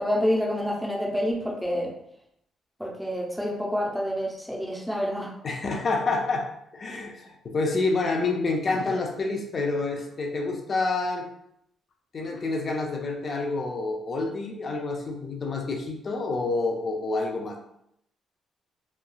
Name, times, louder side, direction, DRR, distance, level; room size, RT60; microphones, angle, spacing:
voice 1, 0.0-1.9 2.8-5.3, equal, ahead, -3 dB, 0.6 m, -28 dB
voice 2, 5.4-6.5 6.7-11.3 12.1-17.6, left 3 dB, 45° left, 1 dB, 0.5 m, -28 dB
3.1 x 2.3 x 2.3 m, 0.76 s
cardioid pair, 90°, 0 cm